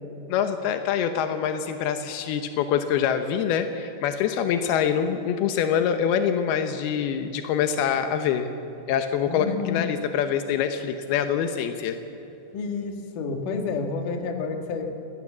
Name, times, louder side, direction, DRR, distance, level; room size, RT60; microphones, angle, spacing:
voice 1, 0.3-8.5 8.9-12.0, left 8 dB, 85° left, 7 dB, 2.2 m, -25 dB
voice 2, 9.3-9.8 12.5-14.9, left 4 dB, 60° left, 4 dB, 2.5 m, -29 dB
24.0 x 18.5 x 7.3 m, 3.0 s
omnidirectional pair, 5.7 m